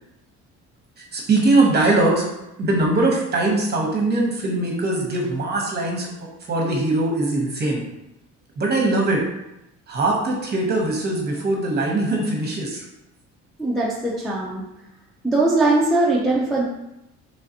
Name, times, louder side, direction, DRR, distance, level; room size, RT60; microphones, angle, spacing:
voice 1, 1.1-2.3 2.6-7.8 8.6-9.2 9.9-12.8, right 2 dB, 35° right, -1 dB, 0.9 m, -21 dB
voice 2, 13.6-14.6 15.2-16.6, right 2 dB, ahead, -6 dB, 0.4 m, -20 dB
3.8 x 3.3 x 2.8 m, 0.88 s
cardioid pair, 150°, 30 cm